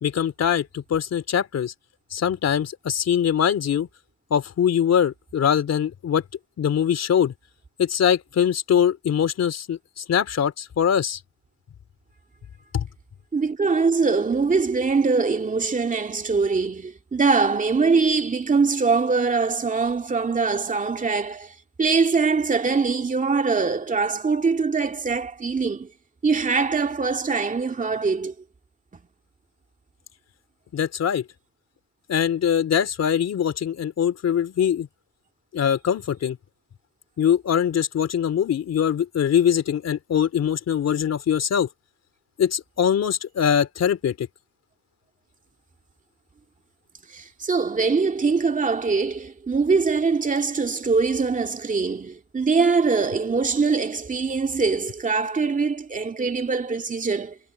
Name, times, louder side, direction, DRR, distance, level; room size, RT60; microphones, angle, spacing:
voice 1, 0.0-1.7 2.1-3.9 4.3-6.2 6.6-7.3 7.8-11.2 12.7-12.8 30.7-31.2 32.1-34.9 35.5-36.4 37.2-41.7 42.4-44.3, left 8 dB, 60° left, 3.4 m, -22 dB
voice 2, 13.3-25.9 26.2-28.3 47.1-57.4, right 4 dB, 25° right, 2.1 m, -23 dB
cardioid pair, 90°, 30 cm